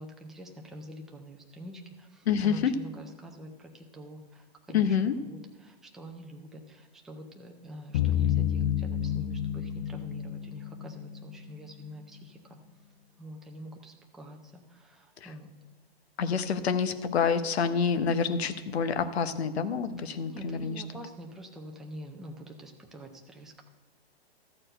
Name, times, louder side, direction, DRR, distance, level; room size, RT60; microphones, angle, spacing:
voice 1, 0.0-12.6 13.2-15.5 20.0-23.6, right 1 dB, ahead, 2 dB, 0.4 m, -46 dB
voice 2, 2.3-2.7 4.7-5.1 15.2-15.3 16.2-20.8, left 6 dB, 75° left, 11 dB, 0.9 m, -27 dB
sound 1, 7.9-11.7, left 10 dB, 60° left, 0.5 m, -30 dB
13.0 x 4.4 x 7.7 m, 1.2 s
hypercardioid pair, 135°, 32 cm